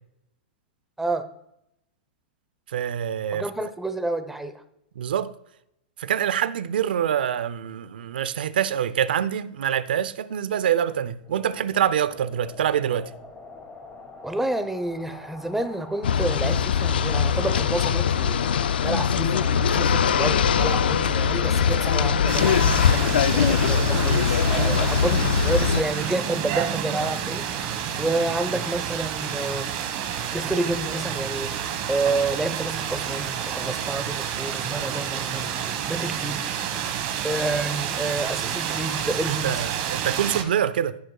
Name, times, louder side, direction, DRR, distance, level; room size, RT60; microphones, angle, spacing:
voice 1, 2.7-3.5 5.0-5.3 6.0-13.1 24.6-24.8 39.3-41.0, right 9 dB, 80° right, 0.6 m, -25 dB
voice 2, 3.3-4.5 14.2-29.7 30.3-36.5 37.2-39.6, right 2 dB, 5° right, 0.9 m, -29 dB
sound 1, 11.2-26.2 26.6-26.7, left 2 dB, 15° left, 2.4 m, -43 dB
sound 2, 16.0-25.8, left 7 dB, 90° left, 0.4 m, -21 dB
sound 3, 22.3-40.4, right 9 dB, 50° right, 1.5 m, -29 dB
15.5 x 6.4 x 2.4 m
hypercardioid pair, 130°, 5 cm